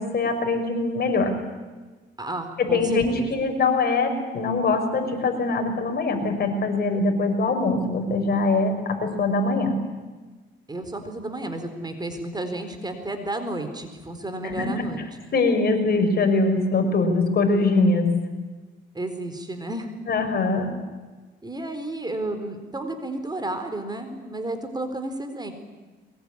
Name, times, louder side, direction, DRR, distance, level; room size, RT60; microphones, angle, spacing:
voice 1, 0.0-1.3 2.6-9.8 14.4-14.9 15.3-18.1 20.1-20.7, left 3 dB, 50° left, 5 dB, 5.7 m, -22 dB
voice 2, 2.2-3.3 10.7-15.0 18.9-19.9 21.4-25.5, right 2 dB, 20° right, 8 dB, 4.2 m, -32 dB
23.0 x 21.5 x 9.9 m, 1.3 s
cardioid pair, 90°, 20 cm